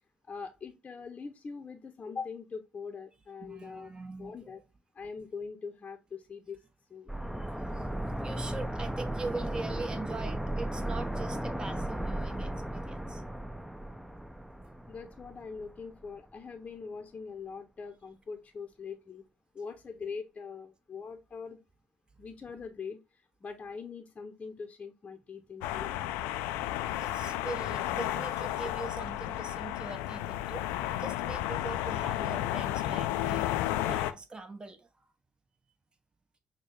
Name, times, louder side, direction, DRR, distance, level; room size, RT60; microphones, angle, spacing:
voice 1, 0.2-3.9 4.2-4.6 4.9-6.6 6.9-7.2 14.9-19.2 19.5-21.6 22.2-26.0, left 5 dB, 35° left, 0.7 m, -42 dB
voice 2, 3.4-4.6 7.1-13.2 26.8-30.7 31.0-35.1, right 3 dB, 25° right, 1.0 m, -42 dB
sound 1, 7.1-15.8 16.1-16.2, right 1 dB, 5° right, 0.6 m, -36 dB
sound 2, 25.6-34.1, left 13 dB, 80° left, 0.3 m, -32 dB
6.1 x 2.2 x 3.4 m
hypercardioid pair, 55°, 4 cm